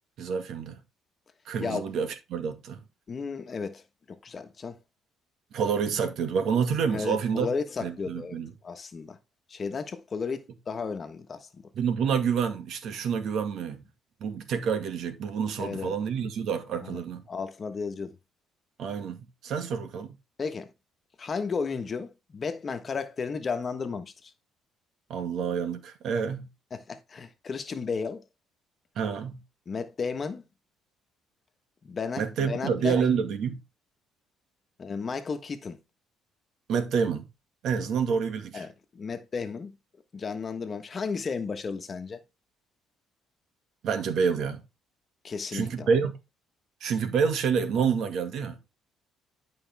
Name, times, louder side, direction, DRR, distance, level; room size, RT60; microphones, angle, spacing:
voice 1, 0.2-0.8 1.5-2.8 5.5-7.5 7.8-8.5 11.7-13.8 14.2-17.2 18.8-20.1 25.1-26.4 29.0-29.4 32.2-33.6 36.7-37.3 37.6-38.7 43.8-44.6 45.5-46.1 46.8-48.6, right 6 dB, 65° right, 2.1 m, -28 dB
voice 2, 1.6-1.9 3.1-4.8 6.9-8.4 8.6-9.2 9.5-11.5 15.6-15.9 16.8-18.2 20.4-20.7 21.2-24.3 26.7-28.2 29.7-30.4 31.8-33.0 34.8-35.8 38.5-39.7 40.1-42.2 45.2-45.9, left 5 dB, 35° left, 1.3 m, -33 dB
11.5 x 5.3 x 3.5 m
cardioid pair, 100°, 0 cm